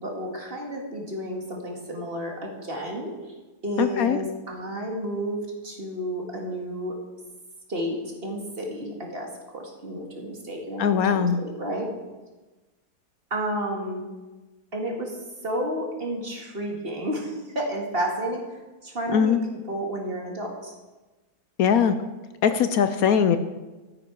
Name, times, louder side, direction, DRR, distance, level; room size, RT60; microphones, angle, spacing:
voice 1, 0.0-3.2 3.6-5.4 5.6-7.0 7.7-11.9 13.3-14.0 14.7-15.1 15.4-18.4 18.8-20.7, right 1 dB, 35° right, 0 dB, 2.1 m, -31 dB
voice 2, 3.8-4.2 10.8-11.4 19.1-19.4 21.6-22.0 22.4-23.4, left 7 dB, 70° left, 10 dB, 1.0 m, -20 dB
13.0 x 10.5 x 4.6 m, 1.2 s
omnidirectional pair, 1.7 m